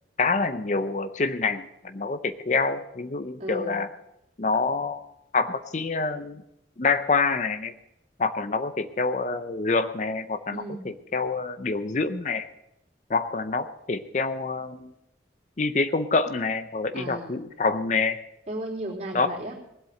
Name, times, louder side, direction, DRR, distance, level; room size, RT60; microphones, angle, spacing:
voice 1, 0.2-3.9 4.4-5.0 5.3-6.4 6.8-7.7 8.2-12.5 13.1-14.9 15.6-18.2 19.1-19.3, left 4 dB, 40° left, 10 dB, 0.6 m, -26 dB
voice 2, 3.4-3.8 10.5-10.8 16.9-17.4 18.5-19.5, right 1 dB, 40° right, -4 dB, 3.4 m, -35 dB
19.0 x 8.1 x 6.5 m, 0.85 s
head